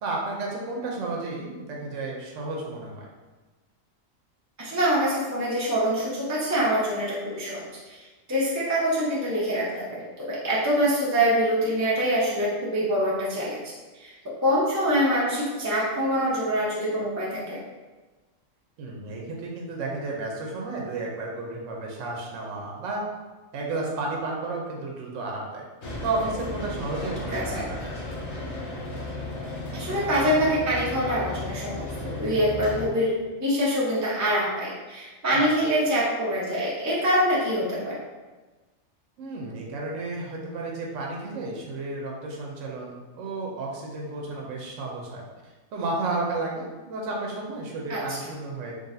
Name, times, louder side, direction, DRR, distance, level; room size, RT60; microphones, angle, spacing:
voice 1, 0.0-3.1 18.8-23.0 23.5-25.6 26.0-28.1 35.3-35.4 39.2-45.2 45.7-48.7, right 2 dB, 70° right, -2 dB, 1.0 m, -32 dB
voice 2, 4.6-13.7 14.0-14.1 14.4-17.6 27.3-27.6 29.7-33.1 33.4-38.0 47.9-48.2, equal, 20° right, -7 dB, 0.4 m, -25 dB
sound 1, 25.8-32.9, left 2 dB, 60° left, 1.0 m, -34 dB
3.9 x 3.2 x 2.6 m, 1.2 s
omnidirectional pair, 1.4 m